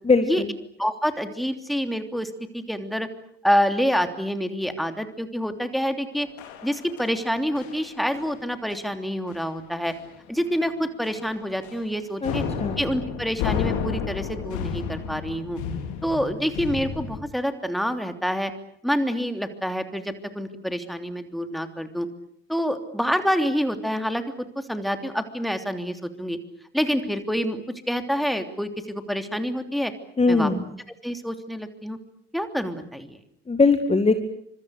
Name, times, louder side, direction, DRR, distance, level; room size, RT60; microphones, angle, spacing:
voice 1, 0.0-0.5 12.2-12.8 30.2-30.8 33.5-34.1, left 3 dB, 20° left, 8 dB, 2.2 m, -21 dB
voice 2, 0.8-3.1 3.4-6.3 6.6-9.9 10.3-12.4 12.8-15.6 16.0-18.5 18.8-22.1 22.5-24.2 24.7-26.4 26.7-29.9 30.3-30.5 31.0-32.0 32.3-33.2, equal, ahead, 7 dB, 3.2 m, -27 dB
sound 1, 6.4-7.3 7.6-7.9 8.1-8.4 8.7-8.9 9.3-9.4 9.9-10.2 10.5-10.6 11.0-11.9 12.2-17.2, left 7 dB, 60° left, 3.5 m, -32 dB
29.0 x 26.0 x 6.6 m, 0.68 s
figure-of-eight pair, 50°, 33 cm